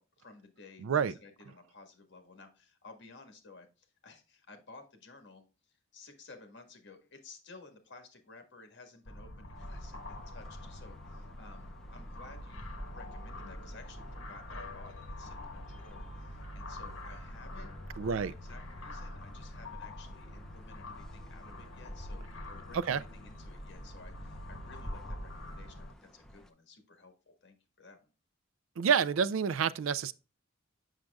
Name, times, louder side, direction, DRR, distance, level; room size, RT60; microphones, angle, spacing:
voice 1, 0.0-28.1, left 3 dB, 60° left, 1.6 m, -55 dB
voice 2, 0.8-1.1 18.0-18.3 22.7-23.0 28.8-30.1, right 7 dB, 80° right, 0.4 m, -28 dB
sound 1, 9.0-25.9, left 1 dB, 80° left, 1.2 m, -45 dB
sound 2, 9.5-26.5, equal, 5° left, 0.7 m, -51 dB
7.4 x 6.4 x 2.3 m
head